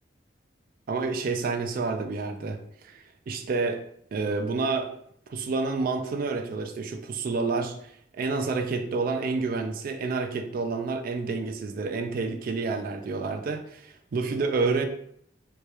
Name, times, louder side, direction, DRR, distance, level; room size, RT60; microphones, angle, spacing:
voice 1, 0.9-3.8 4.1-4.9 5.3-14.9, right 4 dB, 55° right, 6 dB, 0.3 m, -29 dB
2.8 x 2.2 x 3.2 m, 0.69 s
head